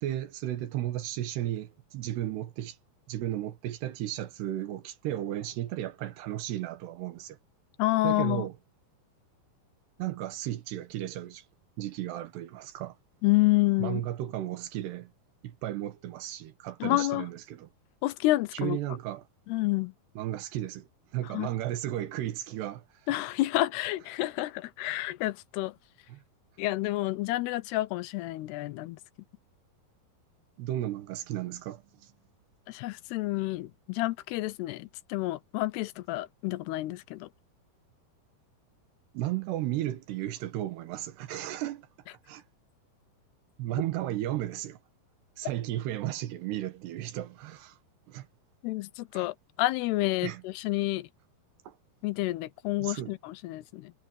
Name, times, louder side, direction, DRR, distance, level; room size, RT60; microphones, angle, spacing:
voice 1, 0.0-2.8 3.1-7.4 8.0-8.5 10.0-11.4 11.8-13.0 13.8-15.1 15.4-17.7 18.5-19.2 20.2-22.8 26.1-26.2 30.6-32.1 39.1-41.9 42.3-42.4 43.6-44.8 45.4-47.8 48.1-48.3 49.1-49.3 50.2-50.4 51.7-51.8 52.8-53.1, right 13 dB, 90° right, 3.5 m, -34 dB
voice 2, 7.8-8.5 13.2-14.0 16.8-17.3 18.0-18.8 19.5-19.9 21.3-21.5 23.1-25.7 26.6-29.0 32.7-37.3 48.6-51.1 52.0-53.9, left 18 dB, 85° left, 2.8 m, -29 dB
omnidirectional pair, 4.6 m